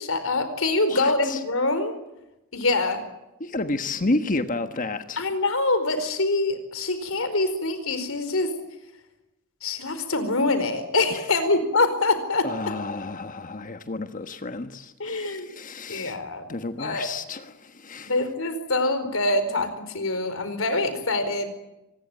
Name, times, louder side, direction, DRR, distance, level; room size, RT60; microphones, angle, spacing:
voice 1, 0.0-1.9 2.5-3.0 5.2-8.5 9.6-12.7 15.0-15.5 15.9-16.4 16.8-17.1 18.0-21.5, left 2 dB, 70° left, 10 dB, 4.6 m, -25 dB
voice 2, 0.9-1.4 3.4-5.2 11.1-11.5 12.4-16.2 16.5-18.1, left 2 dB, 40° left, 8 dB, 1.3 m, -31 dB
25.5 x 20.5 x 9.1 m, 0.92 s
head